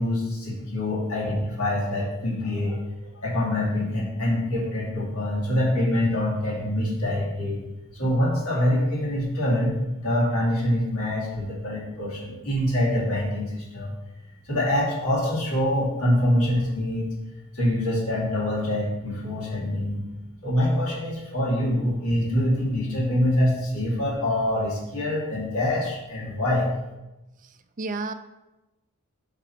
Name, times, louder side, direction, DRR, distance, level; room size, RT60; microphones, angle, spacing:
voice 1, 0.0-2.8 3.2-7.6 7.9-13.9 14.5-17.1 17.5-20.0 20.4-26.7, left 1 dB, 80° left, -5 dB, 2.5 m, -25 dB
voice 2, 27.4-28.1, right 3 dB, 35° right, 9 dB, 0.4 m, -32 dB
5.8 x 4.6 x 6.0 m, 1.0 s
head